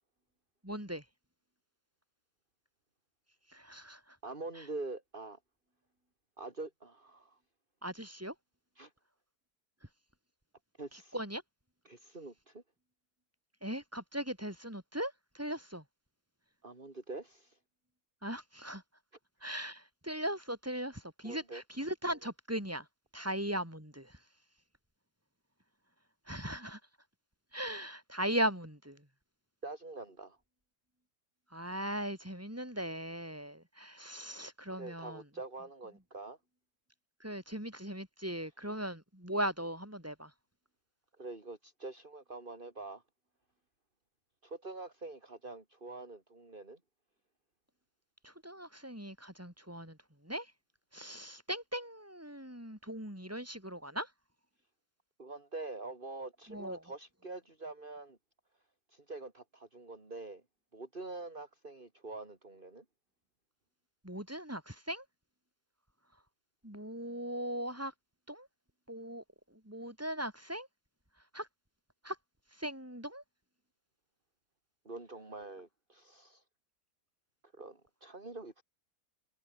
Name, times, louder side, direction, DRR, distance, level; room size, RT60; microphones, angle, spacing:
voice 1, 0.6-1.0 3.5-4.2 7.8-8.3 11.1-11.4 13.6-15.8 18.2-18.8 19.4-22.9 23.1-24.2 26.3-26.8 27.5-29.0 31.5-35.2 37.2-40.3 48.2-50.0 50.2-50.5 50.9-54.1 56.5-56.8 64.0-65.0 66.6-67.9 68.3-68.5 68.9-69.2 69.7-70.7 71.3-71.5 72.0-72.2 72.6-73.2, equal, 10° right, 7.2 m, -38 dB
voice 2, 4.2-5.4 6.4-7.4 8.8-8.9 10.8-11.2 11.8-12.6 16.6-17.6 21.2-21.6 29.6-30.4 34.7-36.4 41.2-43.0 44.4-46.8 55.2-58.2 58.9-60.4 60.7-62.8 74.9-76.4 77.5-78.6, right 3 dB, 30° right, 3.7 m, -45 dB
omnidirectional pair, 1.7 m